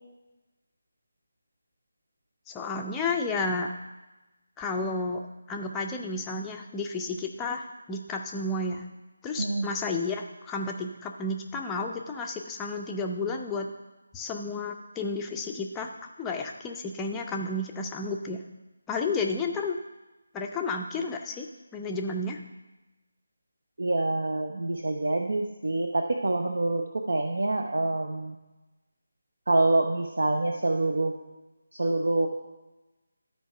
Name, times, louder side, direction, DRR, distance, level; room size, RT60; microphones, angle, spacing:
voice 1, 2.5-3.7 4.6-5.2 5.5-8.9 9.2-13.7 14.1-15.9 16.2-18.4 18.9-19.8 20.3-21.5 21.7-22.4, left 3 dB, 10° left, 2 dB, 0.6 m, -31 dB
voice 2, 9.4-9.7 23.8-28.4 29.5-31.2 31.7-32.3, right 2 dB, 55° right, 3 dB, 0.7 m, -26 dB
12.0 x 4.6 x 5.5 m, 1.1 s
figure-of-eight pair, 155°, 0 cm